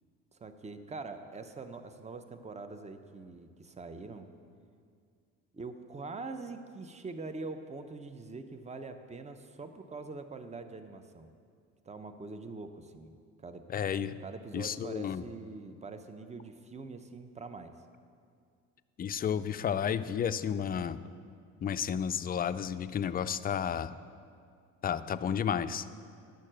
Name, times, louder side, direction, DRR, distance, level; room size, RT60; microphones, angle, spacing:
voice 1, 0.3-4.3 5.5-11.3 11.8-13.1 13.4-13.7 14.2-17.7, right 3 dB, 15° right, 9 dB, 0.8 m, -44 dB
voice 2, 13.7-14.2 14.5-15.2 19.0-21.0 21.6-23.9 24.8-25.9, left 8 dB, 25° left, 12 dB, 0.4 m, -32 dB
10.5 x 6.4 x 7.5 m, 2.2 s
hypercardioid pair, 65°, 41 cm